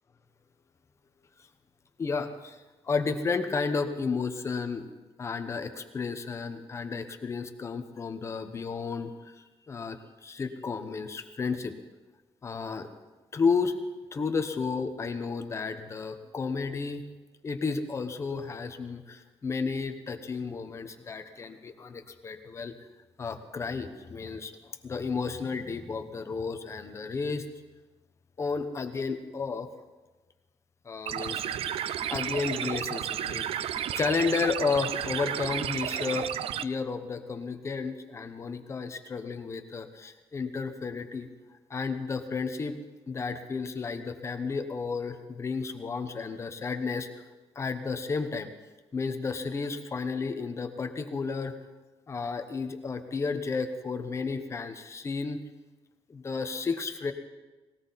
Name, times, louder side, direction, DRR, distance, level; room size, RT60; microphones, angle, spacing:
voice 1, 2.0-4.9 5.2-11.7 12.4-12.9 13.3-13.8 14.1-17.0 17.4-22.7 23.2-27.5 28.4-29.7 30.8-31.4 32.1-36.3 36.6-41.3 41.7-42.8 43.1-47.2 47.5-48.5 48.9-51.6 52.1-55.4 56.1-57.1, left 4 dB, 25° left, 8 dB, 1.0 m, -32 dB
sound 1, 31.1-36.6, right 10 dB, 65° right, 0.5 m, -32 dB
19.0 x 18.0 x 4.1 m, 1.2 s
cardioid pair, 175°, 10 cm